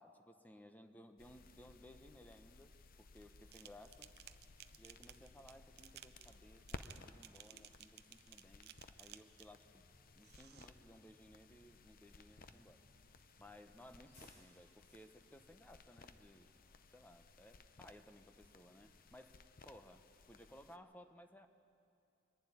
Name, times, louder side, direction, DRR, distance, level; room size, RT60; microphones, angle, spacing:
voice 1, 0.0-4.1 4.8-9.9 10.1-12.8 13.4-16.5 16.9-21.5, left 1 dB, 10° left, 8 dB, 0.8 m, -60 dB
sound 1, 1.2-20.8, left 3 dB, 45° left, 0.7 m, -59 dB
sound 2, 3.5-9.6 10.2-10.7, right 12 dB, 55° right, 0.6 m, -58 dB
Bus, 4.0-17.3, left 1 dB, 65° left, 6.2 m, -72 dB
24.0 x 11.5 x 9.8 m, 2.5 s
head